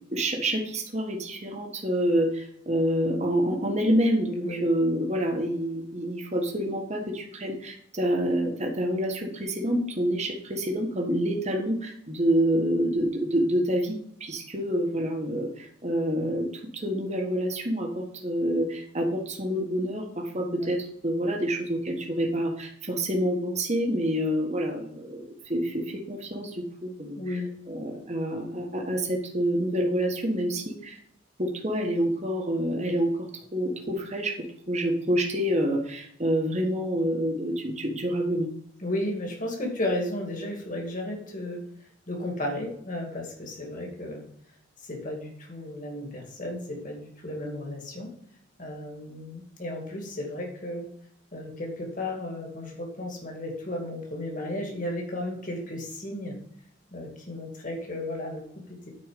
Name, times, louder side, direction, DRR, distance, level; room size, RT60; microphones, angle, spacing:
voice 1, 0.1-16.5 16.7-27.4 27.7-31.0 31.4-34.4 34.7-38.5, equal, 35° right, 2 dB, 1.6 m, -27 dB
voice 2, 27.2-27.5 38.8-41.6 42.1-44.2 44.8-48.1 48.6-50.9 51.3-56.3 56.9-58.4 58.7-58.9, left 1 dB, 40° left, 1 dB, 2.3 m, -34 dB
9.6 x 4.6 x 6.7 m, 0.67 s
head